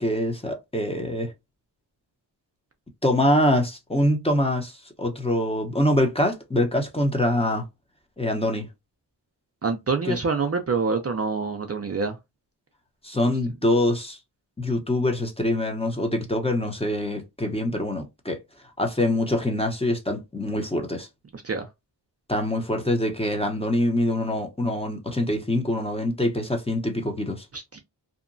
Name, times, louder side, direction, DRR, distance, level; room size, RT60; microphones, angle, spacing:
voice 1, 0.0-1.3 3.0-7.6 8.2-8.7 10.0-10.2 13.0-14.2 14.6-18.4 18.8-21.1 22.3-27.5, left 1 dB, 15° left, 0.7 m, -24 dB
voice 2, 9.6-12.2 21.3-21.7 27.5-27.8, right 4 dB, 35° right, 0.5 m, -26 dB
2.8 x 2.2 x 2.5 m
wide cardioid pair, 75°, 43 cm